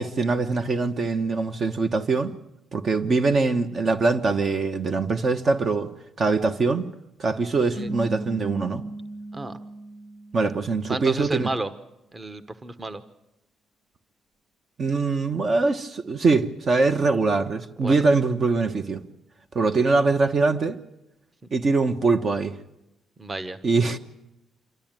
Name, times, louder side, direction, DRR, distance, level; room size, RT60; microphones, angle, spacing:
voice 1, 0.0-2.3 2.7-5.9 6.2-6.9 7.2-8.8 10.3-11.5 14.8-19.0 19.5-20.8 21.5-22.6 23.6-24.0, right 3 dB, 45° right, 1.2 m, -23 dB
sound 1, 7.7-11.1, right 2 dB, 85° right, 3.8 m, -37 dB
voice 2, 10.9-11.7 12.1-13.0 17.8-17.9 23.2-23.6, right 2 dB, 25° right, 1.2 m, -31 dB
26.5 x 13.0 x 9.0 m
cardioid pair, 90°, 0 cm